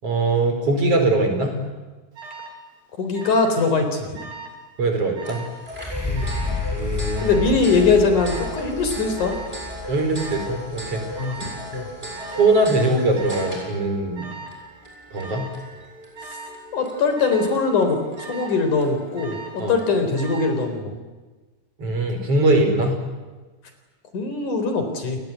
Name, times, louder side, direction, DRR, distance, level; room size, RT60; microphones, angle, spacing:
voice 1, 0.0-1.6 4.8-5.4 6.7-7.3 9.9-11.0 12.3-14.3 15.1-15.5 19.6-19.8 21.8-23.0, right 2 dB, 45° right, 5 dB, 5.7 m, -21 dB
Alarm, 2.2-2.6 3.1-3.6 3.9-4.6 5.2-5.6 6.2-6.6 7.2-7.6 8.2-8.6 9.2-9.6 10.2-10.6 11.2-11.6 12.2-12.6 13.2-13.6 14.2-14.6 15.2-15.6 16.2-16.6 17.2-17.6 18.2-18.6 19.2-19.7 20.2-20.6, right 3 dB, 85° right, 6.8 m, -39 dB
voice 2, 3.0-4.1 6.1-6.6 7.2-9.4 11.2-11.4 11.7-11.9 16.7-18.0 18.3-20.9 24.1-25.2, left 4 dB, 65° left, 7 dB, 5.6 m, -21 dB
sound 1, 5.2-20.0, equal, 15° right, 7.4 m, -38 dB
sound 2, 5.7-13.4 14.1-14.2, left 4 dB, 5° left, 3.4 m, -32 dB
30.0 x 20.0 x 9.5 m, 1.3 s
omnidirectional pair, 3.8 m